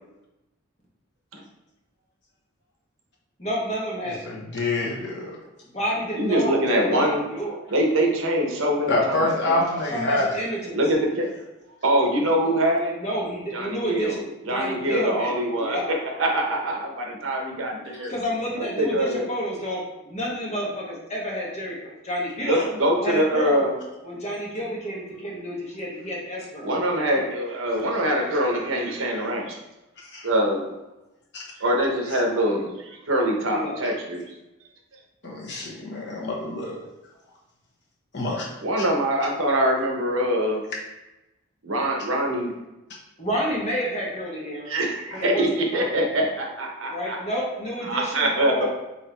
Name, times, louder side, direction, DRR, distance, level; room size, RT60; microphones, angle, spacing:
voice 1, 3.4-4.2 5.7-7.6 9.7-10.8 12.9-15.8 18.1-22.6 23.0-23.6 24.0-26.7 33.4-33.8 43.2-44.7 45.1-45.4 45.7-45.9 46.9-48.7, equal, 35° left, -4 dB, 1.2 m, -30 dB
voice 2, 4.2-5.4 8.9-10.3 17.9-18.0 22.5-22.7 30.0-30.3 31.3-31.5 32.1-32.2 35.2-36.8 38.1-38.4, left 2 dB, 60° left, -3 dB, 1.1 m, -26 dB
voice 3, 6.1-7.3 7.7-9.6 10.7-11.3 11.8-12.9 13.5-14.1 14.5-18.1 18.6-19.2 22.4-23.8 26.6-29.6 30.2-30.7 31.6-34.2 38.6-40.6 41.6-42.5 44.7-47.2 47.8-48.7, right 1 dB, 80° right, 1 dB, 0.9 m, -24 dB
4.1 x 2.9 x 4.4 m, 0.99 s
head